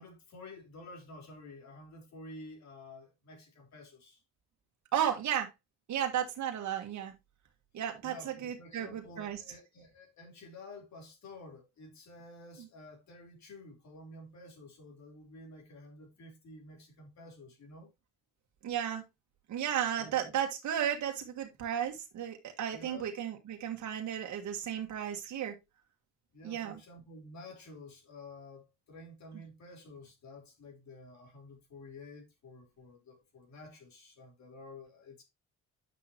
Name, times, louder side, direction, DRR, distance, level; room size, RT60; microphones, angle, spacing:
voice 1, 0.0-4.2 8.0-17.9 20.0-20.3 22.7-23.1 26.3-35.2, left 2 dB, 65° left, 4.0 m, -51 dB
voice 2, 4.9-5.5 5.9-7.1 7.7-9.4 18.6-19.0 19.5-25.5 26.4-26.8, right 9 dB, 70° right, 1.5 m, -34 dB
9.1 x 6.2 x 2.9 m
cardioid pair, 90°, 30 cm